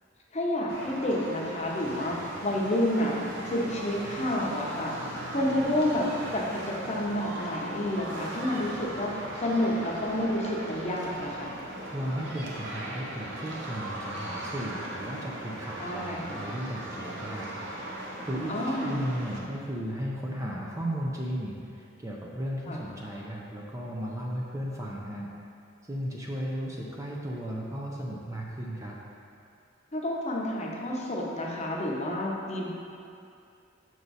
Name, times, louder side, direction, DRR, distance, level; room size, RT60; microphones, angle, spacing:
voice 1, 0.3-3.2 3.5-4.9 5.3-11.5 15.8-16.4 18.5-18.9 22.7-22.8 29.9-32.7, left 1 dB, 35° left, -3 dB, 0.8 m, -29 dB
sound 1, 0.7-19.4, right 1 dB, 65° right, 0.8 m, -38 dB
voice 2, 11.9-25.3 25.9-29.0, equal, 15° right, -3 dB, 0.5 m, -35 dB
6.6 x 4.6 x 4.1 m, 2.5 s
head